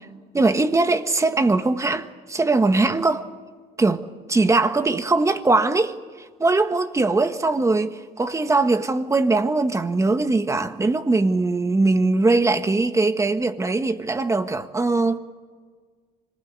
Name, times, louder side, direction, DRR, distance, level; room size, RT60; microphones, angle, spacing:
voice 1, 0.3-3.3 3.8-4.0 4.3-15.2, right 3 dB, 15° right, 1.5 m, -21 dB
26.0 x 20.0 x 9.6 m
cardioid pair, 110°, 17 cm